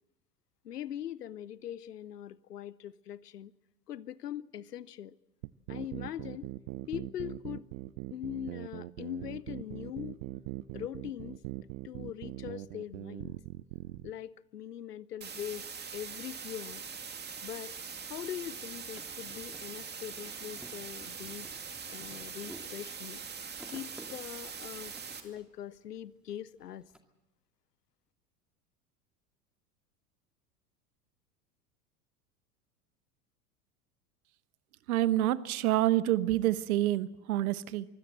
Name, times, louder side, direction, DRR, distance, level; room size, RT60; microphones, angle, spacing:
voice 1, 0.6-3.5 3.9-5.1 5.7-6.5 6.9-7.7 8.1-10.2 10.7-11.4 11.8-13.4 14.0-16.8 17.4-17.7 18.1-21.5 21.9-23.2 23.7-24.9 25.2-26.9, left 11 dB, 80° left, 0.8 m, -42 dB
sound 1, 5.4-14.1, right 18 dB, 50° right, 0.7 m, -41 dB
Withe Hiss, 15.2-25.2, right 6 dB, 20° right, 2.4 m, -43 dB
sound 2, 18.8-26.3 26.6-27.0, right 1 dB, ahead, 2.2 m, -54 dB
voice 2, 34.9-37.9, right 14 dB, 65° right, 1.1 m, -27 dB
24.0 x 16.0 x 7.7 m
figure-of-eight pair, 85°, 47 cm